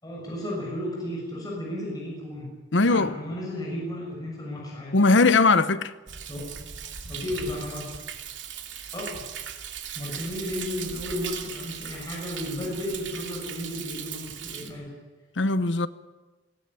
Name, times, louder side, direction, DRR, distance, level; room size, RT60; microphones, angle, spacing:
voice 1, 0.0-2.5 2.8-5.0 6.2-6.4 7.1-7.8 8.9-9.2 9.9-14.9, left 1 dB, 20° left, 7.0 m, -34 dB
voice 2, 2.7-3.1 4.9-5.9 15.4-15.9, left 3 dB, 75° left, 0.9 m, -19 dB
Thunder, 6.1-14.7, right 8 dB, 75° right, 2.6 m, -38 dB
21.0 x 17.0 x 9.8 m
head